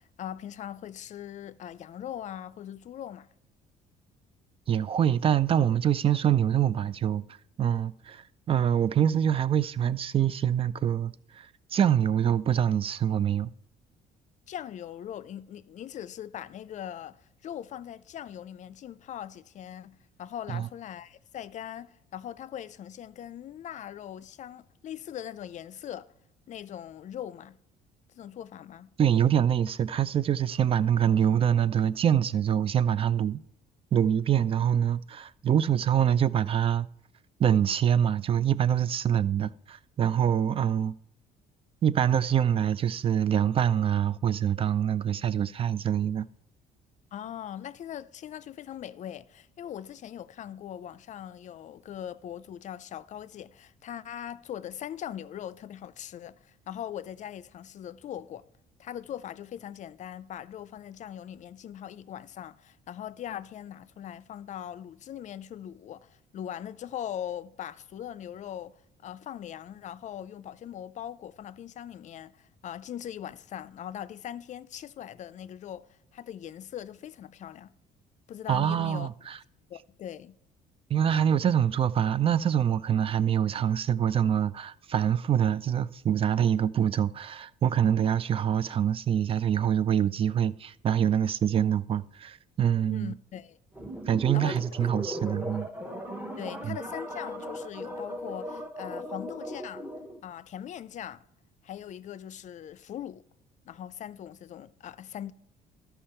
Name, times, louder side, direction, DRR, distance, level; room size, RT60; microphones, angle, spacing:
voice 1, 0.0-3.3 14.5-26.1 26.5-27.6 28.2-28.9 47.1-58.4 58.8-77.7 78.3-79.1 79.7-80.4 92.9-93.6 94.3-94.6 96.4-99.9 100.2-101.3 101.6-103.2 103.7-105.3, left 10 dB, 45° left, 0.4 m, -40 dB
voice 2, 4.7-7.3 7.6-13.5 20.5-20.7 29.0-33.4 33.9-36.9 37.4-40.9 41.8-46.3 78.5-79.4 80.9-93.1 94.1-95.7 96.6-96.8, right 9 dB, 35° right, 0.3 m, -25 dB
sound 1, 93.7-100.2, equal, 10° right, 1.0 m, -37 dB
13.0 x 5.6 x 4.3 m
cardioid pair, 110°, 17 cm